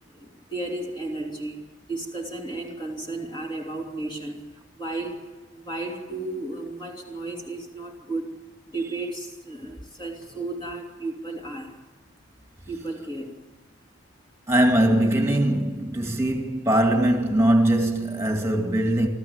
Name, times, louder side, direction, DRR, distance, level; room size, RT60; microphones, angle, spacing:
voice 1, 0.1-8.4 8.7-11.8 12.7-13.4, right 2 dB, 20° left, 3.0 m, -34 dB
voice 2, 14.5-19.1, right 1 dB, 15° right, 2.3 m, -21 dB
25.5 x 14.0 x 8.2 m
head